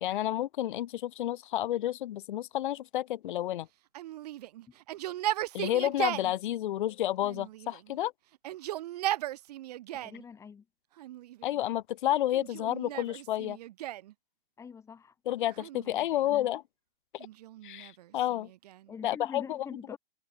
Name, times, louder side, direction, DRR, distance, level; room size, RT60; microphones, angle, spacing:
voice 1, 0.0-3.7 5.5-8.1 11.4-13.6 15.3-16.6 17.6-18.5 19.0-19.6, left 13 dB, 55° left, 0.5 m, -30 dB
Yell, 3.9-6.3 7.2-8.0 8.3-10.2 11.0-11.6 12.3-14.1 15.5-16.4 17.2-18.9, right 14 dB, 40° right, 1.1 m, -37 dB
voice 2, 9.9-10.7 14.6-15.2 15.8-15.9 16.2-16.6 18.9-20.0, left 6 dB, 10° left, 5.0 m, -45 dB
open air
hypercardioid pair, 160°, 30 cm